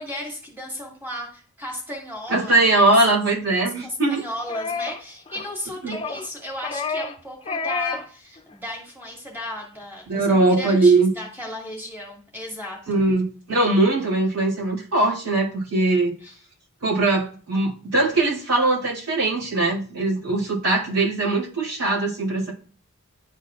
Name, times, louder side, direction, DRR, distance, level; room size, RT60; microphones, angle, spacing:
voice 1, 0.0-2.9 3.8-13.0 16.2-16.3, left 1 dB, 10° right, -2 dB, 2.0 m, -35 dB
voice 2, 2.3-4.2 5.8-6.0 10.1-11.1 12.9-16.2 16.8-22.5, right 2 dB, 90° right, -7 dB, 3.0 m, -21 dB
sound 1, 4.5-5.0 5.3-5.5 5.9-6.3 6.6-7.2 7.5-8.1 8.4-8.5, left 4 dB, 25° left, 0.5 m, -29 dB
11.0 x 4.1 x 2.4 m, 0.42 s
head